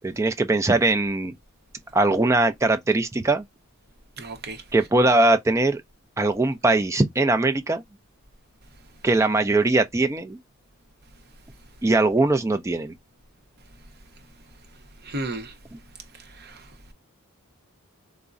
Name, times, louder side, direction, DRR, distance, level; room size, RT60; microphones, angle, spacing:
voice 1, 0.0-1.3 1.9-3.4 4.7-5.8 6.2-7.8 9.0-10.4 11.8-12.9, right 2 dB, 15° right, 0.3 m, -21 dB
voice 2, 4.2-4.6 15.1-15.5, right 2 dB, 45° right, 0.7 m, -32 dB
3.6 x 2.0 x 2.5 m
head